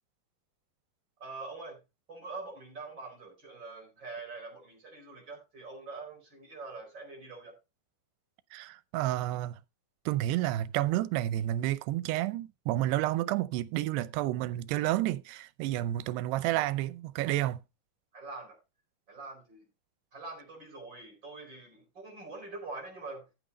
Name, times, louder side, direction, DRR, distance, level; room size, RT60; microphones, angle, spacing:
voice 1, 1.2-1.8 2.1-7.6 18.1-18.6 19.1-19.6 20.1-23.3, right 3 dB, 30° right, 4.6 m, -44 dB
voice 2, 8.5-9.6 10.1-17.6, right 14 dB, 85° right, 2.8 m, -30 dB
14.0 x 5.8 x 4.1 m
omnidirectional pair, 4.7 m